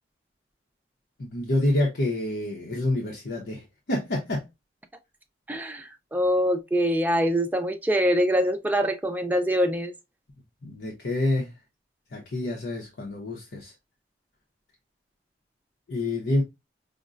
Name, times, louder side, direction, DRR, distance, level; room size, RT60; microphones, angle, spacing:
voice 1, 1.2-3.6 3.9-4.4 10.6-11.5 12.1-13.7 15.9-16.4, left 1 dB, 70° left, 0.8 m, -27 dB
voice 2, 5.5-9.9, equal, 10° right, 0.4 m, -24 dB
5.1 x 2.1 x 2.4 m
head